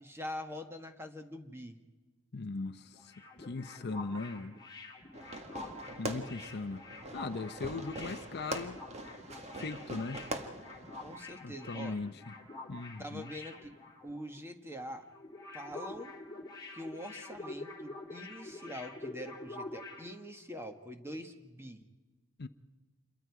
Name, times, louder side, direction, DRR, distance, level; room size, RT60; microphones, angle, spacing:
voice 1, 0.0-1.8 11.0-12.0 13.0-13.7 14.0-15.0 15.5-16.1 16.7-21.8, equal, 10° right, 1.5 m, -44 dB
voice 2, 2.3-4.6 6.0-6.8 7.1-8.8 9.6-10.3 11.4-12.3 12.7-13.3 22.4-22.5, left 3 dB, 50° left, 0.7 m, -39 dB
sound 1, 2.9-14.4 14.7-14.8 15.1-20.1, left 2 dB, 20° left, 2.8 m, -47 dB
Fireworks, 5.1-11.2, right 1 dB, 30° right, 1.7 m, -43 dB
28.0 x 23.0 x 4.8 m
head